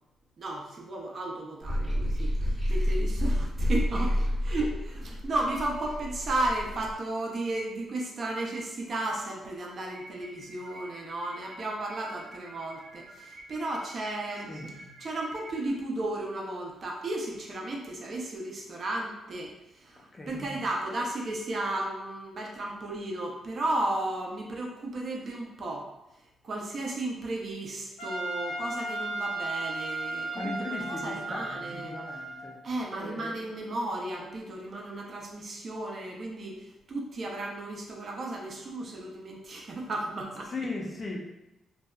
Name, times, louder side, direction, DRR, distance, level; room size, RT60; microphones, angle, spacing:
voice 1, 0.4-19.5 19.8-20.0 20.3-25.9 26.4-31.9 32.6-36.5 36.9-40.7, right 2 dB, 40° right, -1 dB, 0.5 m, -34 dB
sound 1, 1.6-6.9, equal, 25° right, 0.9 m, -29 dB
sound 2, 9.9-15.7, right 1 dB, 70° right, 0.7 m, -49 dB
voice 2, 20.0-20.4 30.3-32.6 32.9-33.4 40.5-41.2, left 2 dB, 30° left, -1 dB, 0.4 m, -38 dB
Trumpet, 28.0-32.6, right 2 dB, 85° left, 0.5 m, -35 dB
2.6 x 2.2 x 2.3 m, 0.93 s
cardioid pair, 130°, 0 cm